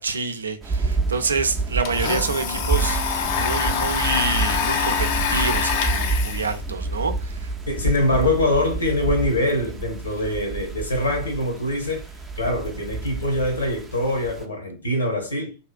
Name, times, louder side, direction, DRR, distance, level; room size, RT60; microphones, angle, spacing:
voice 1, 0.0-7.5, right 4 dB, 75° right, 0.4 m, -27 dB
sound 1, 0.6-14.4, right 3 dB, 10° right, 0.4 m, -29 dB
Domestic sounds home sounds, 0.9-1.0 1.3-7.9, left 6 dB, 50° left, 0.4 m, -26 dB
voice 2, 7.7-12.0 12.3-15.5, left 1 dB, 70° left, 1.1 m, -23 dB
2.8 x 2.4 x 2.3 m
figure-of-eight pair, 90°, 0 cm